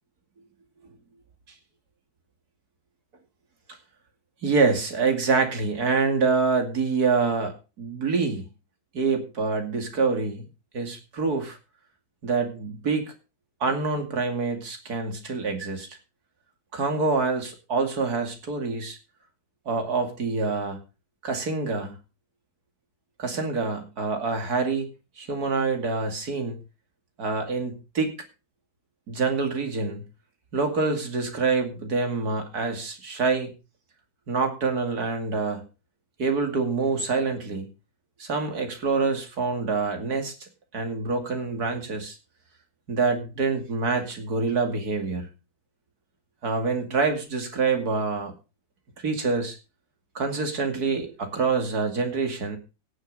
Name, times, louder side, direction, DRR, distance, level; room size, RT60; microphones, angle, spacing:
voice 1, 4.4-8.4 8.9-10.4 10.7-11.6 12.2-13.0 13.6-15.9 16.7-19.0 19.7-20.8 21.2-21.9 23.2-24.9 25.2-26.6 27.2-28.1 29.1-30.0 30.5-33.5 34.3-35.6 36.2-37.7 38.2-40.3 40.7-42.2 42.9-45.3 46.4-48.3 49.0-49.6 50.1-52.6, right 4 dB, 50° right, 4 dB, 3.0 m, -26 dB
17.5 x 6.4 x 5.3 m, 0.31 s
omnidirectional pair, 2.1 m